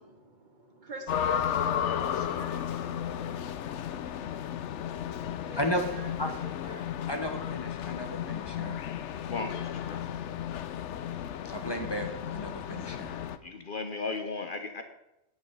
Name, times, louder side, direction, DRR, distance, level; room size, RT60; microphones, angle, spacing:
voice 1, 0.0-6.9, right 2 dB, 45° right, 5 dB, 1.2 m, -48 dB
sound 1, 1.1-13.4, left 9 dB, 85° left, 1.0 m, -34 dB
voice 2, 5.6-5.9 6.2-6.3 7.1-8.8 11.4-13.2, equal, 20° left, 4 dB, 1.2 m, -34 dB
voice 3, 9.2-10.0 13.4-14.8, left 4 dB, 50° left, 7 dB, 0.9 m, -36 dB
9.8 x 8.3 x 5.4 m, 0.90 s
omnidirectional pair, 1.2 m